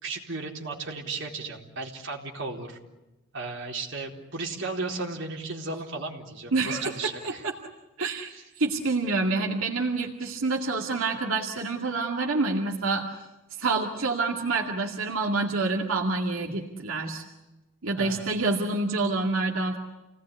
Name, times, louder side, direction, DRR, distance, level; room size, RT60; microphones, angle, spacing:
voice 1, 0.0-2.8 3.3-7.4 8.3-8.4 18.0-18.3, right 3 dB, 60° right, 0 dB, 4.3 m, -35 dB
voice 2, 6.5-7.3 8.0-13.1 13.6-17.2 17.8-19.8, right 3 dB, 90° right, 1 dB, 2.3 m, -27 dB
29.0 x 18.5 x 9.8 m, 1.1 s
head